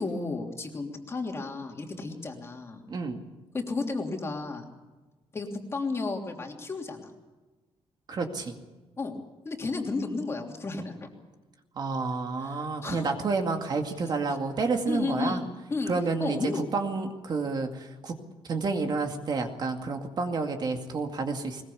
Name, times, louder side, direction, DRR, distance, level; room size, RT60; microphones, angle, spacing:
voice 1, 0.0-2.8 3.5-4.7 5.3-7.1 9.0-9.2 9.4-11.1 12.4-13.1 14.9-15.4 15.7-15.9 16.2-16.6, left 3 dB, 25° left, 2 dB, 3.1 m, -32 dB
voice 2, 2.9-3.2 8.1-8.5 11.8-15.4 15.9-18.2 18.5-21.6, right 4 dB, 40° right, 4 dB, 2.2 m, -30 dB
21.5 x 21.0 x 7.0 m, 1.2 s
wide cardioid pair, 180°, 11 cm